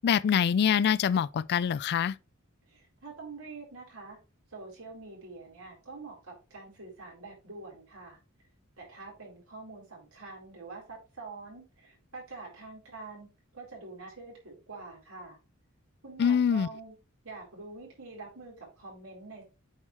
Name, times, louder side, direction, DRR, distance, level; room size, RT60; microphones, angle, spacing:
voice 1, 0.0-2.1 16.2-16.7, left 8 dB, 50° left, 0.3 m, -25 dB
voice 2, 2.7-4.2 4.5-8.2 8.8-15.4 16.0-17.0 17.2-19.4, right 3 dB, 80° right, 4.4 m, -46 dB
8.7 x 4.8 x 3.2 m
head